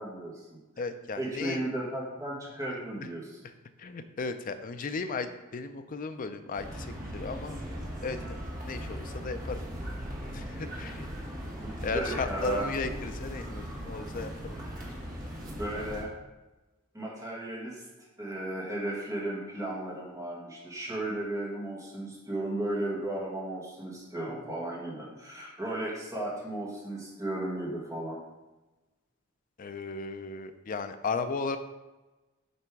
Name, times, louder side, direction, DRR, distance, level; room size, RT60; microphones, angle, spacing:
voice 1, 0.0-0.8 1.2-3.4 11.6-12.7 15.6-16.1 16.9-28.2, right 1 dB, 15° right, -5 dB, 1.7 m, -35 dB
voice 2, 0.8-1.6 3.8-7.6 8.0-8.4 8.6-9.6 10.3-11.1 11.8-14.6 29.6-31.6, left 4 dB, 40° left, 9 dB, 0.4 m, -35 dB
sound 1, 6.6-16.0, equal, 40° right, 1.4 m, -38 dB
6.8 x 3.4 x 4.7 m, 1.1 s
head